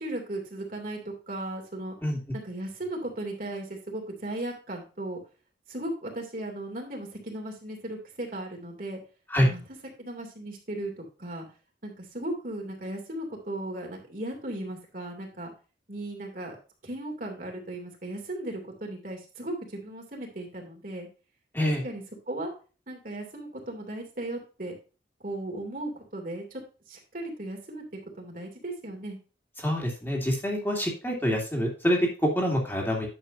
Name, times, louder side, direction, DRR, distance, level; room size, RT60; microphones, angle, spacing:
voice 1, 0.0-1.9 2.3-5.2 5.7-9.0 9.4-9.6 10.0-11.4 11.8-15.5 15.9-16.6 16.8-21.1 21.6-22.5 22.9-24.7 25.2-26.6 26.9-27.8 28.2-29.2, right 1 dB, 50° right, 1 dB, 2.7 m, -36 dB
voice 2, 29.6-33.1, equal, 10° left, -1 dB, 2.5 m, -26 dB
10.5 x 7.3 x 2.7 m, 0.34 s
head